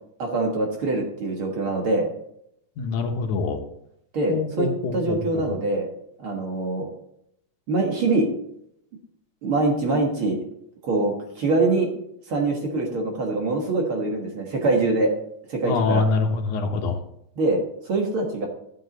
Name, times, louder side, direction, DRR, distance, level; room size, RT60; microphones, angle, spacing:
voice 1, 0.2-2.1 4.1-5.9 6.2-6.9 7.7-8.3 9.4-10.4 10.8-11.9 12.3-15.1 15.5-16.0 17.4-18.5, right 2 dB, 50° right, 1 dB, 2.0 m, -24 dB
voice 2, 2.8-3.6 4.3-5.5 15.6-17.0, left 4 dB, 75° left, 5 dB, 2.4 m, -25 dB
12.0 x 7.4 x 4.0 m, 0.74 s
omnidirectional pair, 3.6 m